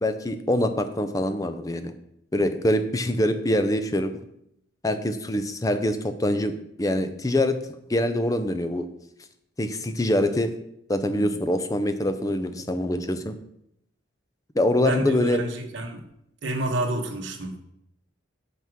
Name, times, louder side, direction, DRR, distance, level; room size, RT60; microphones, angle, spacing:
voice 1, 0.0-1.9 2.3-4.1 4.8-7.6 7.9-8.9 9.6-10.5 10.9-13.4 14.5-15.4, left 1 dB, 20° left, 9 dB, 0.5 m, -24 dB
voice 2, 14.8-16.0 16.4-17.6, right 1 dB, 75° right, 3 dB, 1.2 m, -29 dB
6.1 x 5.7 x 6.1 m, 0.77 s
head